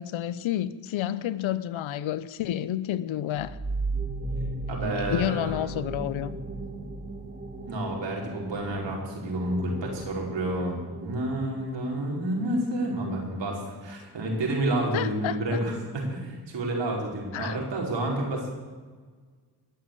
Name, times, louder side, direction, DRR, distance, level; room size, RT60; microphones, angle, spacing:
voice 1, 0.0-3.6 5.1-6.4 14.9-15.6 17.3-17.6, left 12 dB, 80° left, 16 dB, 0.9 m, -30 dB
sound 1, 3.3-12.7, right 2 dB, 20° right, 2.7 m, -36 dB
voice 2, 4.7-5.6 7.6-18.5, right 1 dB, 65° right, -1 dB, 5.3 m, -29 dB
21.5 x 7.6 x 8.3 m, 1.5 s
cardioid pair, 65°, 47 cm